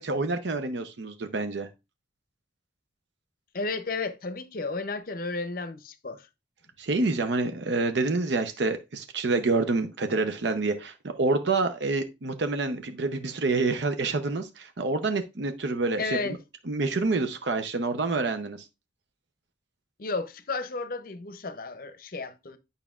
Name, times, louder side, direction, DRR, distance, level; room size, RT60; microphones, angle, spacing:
voice 1, 0.0-1.7 6.8-16.2 16.7-18.6, right 3 dB, 70° right, 0.7 m, -27 dB
voice 2, 3.5-6.3 16.0-16.4 20.0-22.6, left 3 dB, 50° left, 0.6 m, -33 dB
9.1 x 5.5 x 2.4 m
head